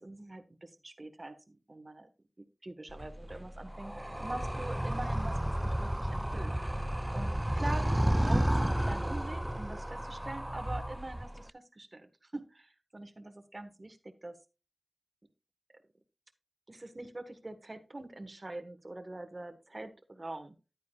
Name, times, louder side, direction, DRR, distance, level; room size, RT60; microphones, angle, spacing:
voice 1, 0.0-2.1 2.6-6.5 7.1-14.3 16.7-20.6, right 2 dB, 35° right, 7 dB, 1.4 m, -44 dB
Animal, 2.9-11.5, right 1 dB, 10° right, 0.3 m, -32 dB
11.0 x 9.3 x 2.3 m, 0.31 s
wide cardioid pair, 65°, 0 cm